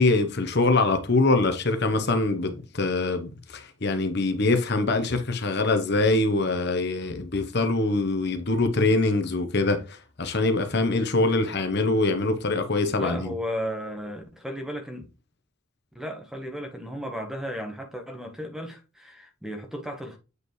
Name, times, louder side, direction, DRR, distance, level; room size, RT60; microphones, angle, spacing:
voice 1, 0.0-9.8 10.2-13.2, left 2 dB, 50° left, 1.0 m, -23 dB
voice 2, 13.0-15.1 15.9-20.2, equal, ahead, 1.2 m, -34 dB
8.1 x 4.9 x 3.2 m
head